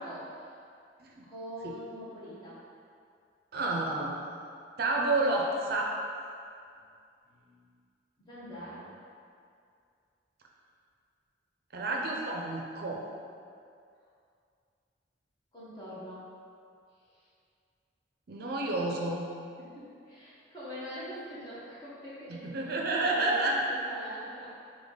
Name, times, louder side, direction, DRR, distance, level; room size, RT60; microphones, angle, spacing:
voice 1, 0.0-0.5 1.2-2.6 7.2-7.6 8.2-8.9 15.5-16.3 19.6-24.5, equal, 25° left, -10 dB, 1.3 m, -44 dB
voice 2, 3.5-4.1 4.8-5.9 11.7-13.0 18.3-19.3 22.3-23.6, right 2 dB, 55° right, -1 dB, 0.5 m, -30 dB
3.6 x 3.3 x 4.0 m, 2.3 s
head